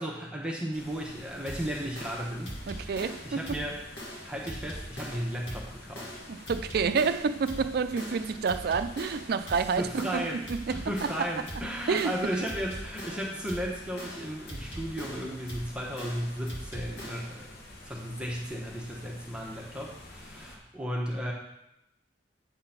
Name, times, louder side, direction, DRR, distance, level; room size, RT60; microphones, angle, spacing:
voice 1, 0.0-3.8 4.2-6.1 9.8-17.5 17.8-21.3, equal, 5° right, 1.0 m, -35 dB
sound 1, 0.7-20.6, left 1 dB, 55° left, 1.1 m, -49 dB
sound 2, 1.5-17.4, equal, 80° left, 1.7 m, -42 dB
voice 2, 2.7-3.6 6.3-11.1 11.9-12.2, right 5 dB, 55° right, 0.4 m, -29 dB
8.6 x 3.8 x 5.7 m
head